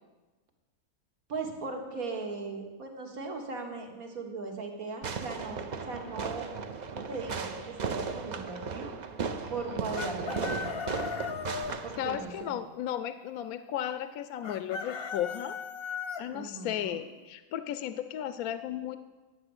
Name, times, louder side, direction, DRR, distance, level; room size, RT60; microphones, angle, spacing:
voice 1, 1.3-6.5 6.9-8.9 9.5-10.8 11.8-12.6 16.3-17.0, right 3 dB, 70° right, 2 dB, 2.0 m, -38 dB
Fireworks, 5.0-12.4, right 5 dB, 50° right, 0.5 m, -36 dB
Chicken rooster, 9.9-11.8 14.4-16.2, left 6 dB, 50° left, 0.8 m, -37 dB
voice 2, 12.0-15.6 16.2-19.0, left 11 dB, 75° left, 12 dB, 1.0 m, -35 dB
10.5 x 6.9 x 7.9 m, 1.2 s
omnidirectional pair, 1.6 m